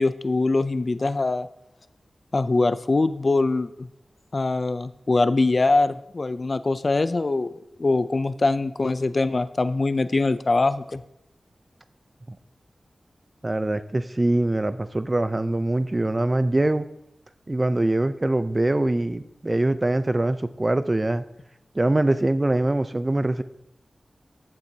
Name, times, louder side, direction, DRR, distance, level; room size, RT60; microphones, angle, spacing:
voice 1, 0.0-1.5 2.3-3.9 4.3-7.5 7.8-11.0, left 3 dB, 45° left, 14 dB, 0.4 m, -23 dB
voice 2, 13.4-16.9 17.5-21.2 21.7-23.4, right 1 dB, 25° right, 13 dB, 0.5 m, -23 dB
14.5 x 7.4 x 2.8 m, 0.85 s
wide cardioid pair, 100°, 0 cm